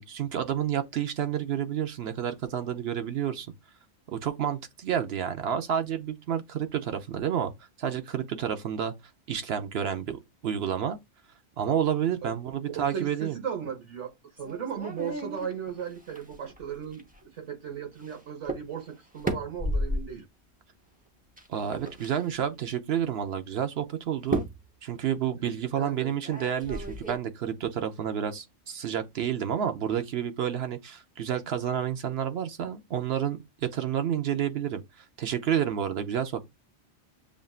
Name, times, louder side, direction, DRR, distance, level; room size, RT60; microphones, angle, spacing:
voice 1, 0.0-3.5 4.1-7.5 7.8-8.9 9.3-11.0 11.6-13.4 21.5-24.4 24.8-34.8 35.2-36.5, right 9 dB, 65° right, 0.9 m, -30 dB
voice 2, 12.7-17.0 17.3-20.3 25.4-26.1, right 8 dB, 80° right, 1.5 m, -36 dB
sound 1, 14.4-17.2 18.0-18.2 18.4-18.6 19.0-20.1 21.4-22.2 23.0-23.1 24.2-24.7 26.2-27.1, right 1 dB, 10° right, 0.7 m, -33 dB
7.1 x 2.6 x 2.4 m
omnidirectional pair, 1.2 m